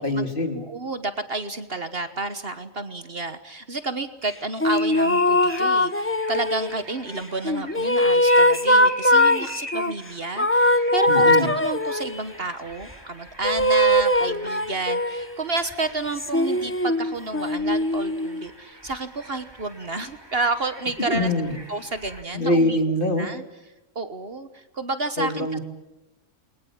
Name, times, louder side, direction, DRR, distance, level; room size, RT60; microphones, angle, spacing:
voice 1, 0.0-0.6 11.1-11.5 21.1-21.5 22.3-23.3 25.2-25.6, left 1 dB, 40° left, 5 dB, 3.3 m, -23 dB
voice 2, 0.5-21.3 21.7-22.8 23.2-23.4 23.9-25.6, right 3 dB, 45° right, 11 dB, 1.4 m, -30 dB
sound 1, 4.6-6.8 7.4-9.9 10.4-12.2 13.4-15.3 16.2-18.4, left 1 dB, 10° left, 0.7 m, -21 dB
sound 2, 4.7-22.2, equal, 20° right, 3.3 m, -42 dB
28.5 x 22.0 x 8.7 m, 0.97 s
omnidirectional pair, 1.4 m